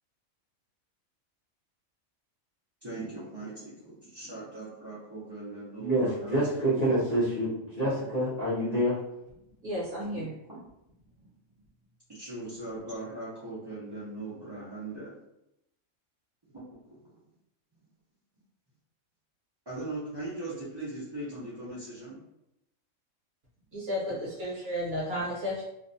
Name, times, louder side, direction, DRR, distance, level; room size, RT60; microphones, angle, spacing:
voice 1, 2.8-6.6 12.1-15.1 16.5-17.1 19.7-22.2, right 2 dB, 35° right, -11 dB, 0.4 m, -40 dB
voice 2, 5.8-9.0, right 1 dB, 40° left, -10 dB, 0.7 m, -27 dB
voice 3, 9.6-10.3 23.7-25.6, equal, 50° right, -6 dB, 1.0 m, -33 dB
2.5 x 2.2 x 2.6 m, 0.83 s
omnidirectional pair, 1.4 m